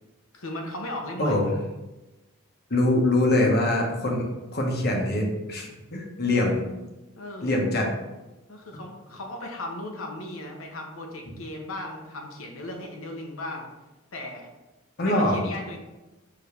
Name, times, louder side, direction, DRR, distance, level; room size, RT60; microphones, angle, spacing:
voice 1, 0.3-1.4 7.2-7.5 8.5-13.7 14.1-14.5 15.0-15.8, left 1 dB, 80° left, 2 dB, 1.1 m, -36 dB
voice 2, 1.2-1.5 2.7-4.3 4.5-6.6 7.4-7.9 15.0-15.4, left 1 dB, 50° left, 0 dB, 1.2 m, -23 dB
4.9 x 3.9 x 5.1 m, 1.1 s
head